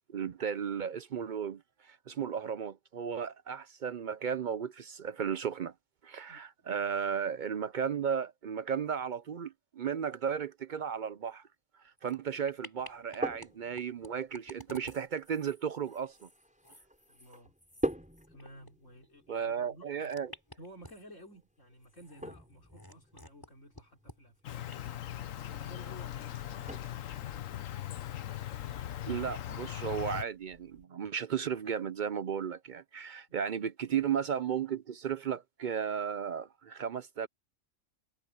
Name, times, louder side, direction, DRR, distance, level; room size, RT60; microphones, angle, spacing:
voice 1, 0.1-5.7 6.0-11.4 12.0-16.3 19.3-20.3 29.1-37.3, right 7 dB, 55° right, 0.5 m, -35 dB
voice 2, 6.3-7.1 17.1-17.5 18.3-20.1 20.6-25.0 25.4-27.4 33.3-33.6, equal, 70° left, 5.5 m, -55 dB
sound 1, 12.0-12.2 12.5-13.5 13.7-18.7 19.0-19.1 20.0-21.3 21.8-23.5 23.7-24.2 24.7-24.8, left 1 dB, 15° left, 3.7 m, -52 dB
sound 2, 12.8-30.8, equal, 5° right, 5.2 m, -45 dB
Insect, 24.4-30.2, left 12 dB, 90° left, 1.2 m, -39 dB
omnidirectional pair, 1.3 m